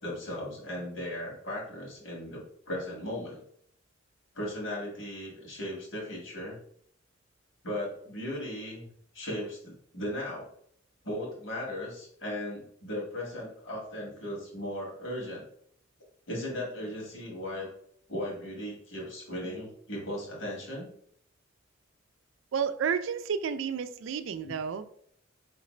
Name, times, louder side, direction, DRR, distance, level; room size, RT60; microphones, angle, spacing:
voice 1, 0.0-3.4 4.3-6.6 7.6-8.9 9.1-10.5 11.0-15.5 16.3-17.7 18.1-20.9 24.4-24.6, left 1 dB, 70° left, 1.8 m, -37 dB
voice 2, 22.5-24.9, right 7 dB, 75° right, 0.4 m, -31 dB
4.9 x 3.3 x 3.2 m
head